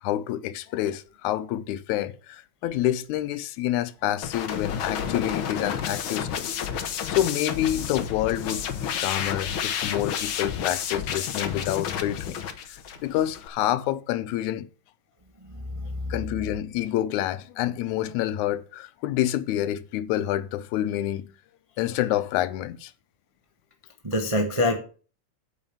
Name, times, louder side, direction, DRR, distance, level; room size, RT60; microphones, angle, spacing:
voice 1, 0.0-12.4 12.7-14.7 16.1-21.3 21.8-22.9, left 13 dB, 85° left, 2.1 m, -28 dB
sound 1, 4.2-13.5, left 8 dB, 65° left, 1.3 m, -31 dB
voice 2, 15.7-16.1 24.0-24.8, left 1 dB, 30° right, 0.6 m, -25 dB
8.7 x 5.5 x 7.0 m
omnidirectional pair, 3.3 m